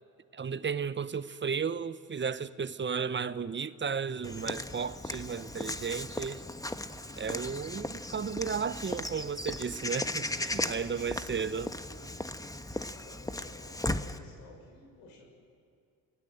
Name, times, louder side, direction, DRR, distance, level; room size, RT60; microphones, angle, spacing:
voice 1, 0.3-6.4 7.2-11.7, right 6 dB, 30° right, 0.9 m, -34 dB
Walk footsteps / Bird vocalization bird call bird song, 4.2-14.2, left 1 dB, 10° left, 1.3 m, -37 dB
voice 2, 11.3-12.2 12.7-15.3, left 2 dB, 85° left, 6.5 m, -54 dB
29.5 x 20.0 x 8.0 m
supercardioid pair, 65°, 40 cm